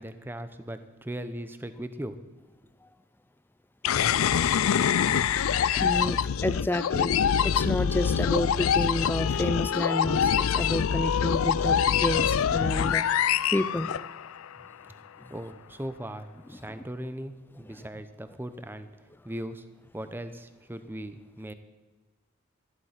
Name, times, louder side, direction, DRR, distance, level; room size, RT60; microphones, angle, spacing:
voice 1, 0.0-2.3 15.3-18.9 19.2-19.7 19.9-21.5, right 1 dB, 10° right, 10 dB, 0.7 m, -38 dB
sound 1, 3.8-14.5, left 8 dB, 90° left, 0.4 m, -25 dB
voice 2, 5.8-7.2 7.4-13.1 13.5-13.9 16.7-16.8, left 1 dB, 10° left, 13 dB, 0.4 m, -30 dB
14.0 x 11.5 x 5.8 m, 1.2 s
head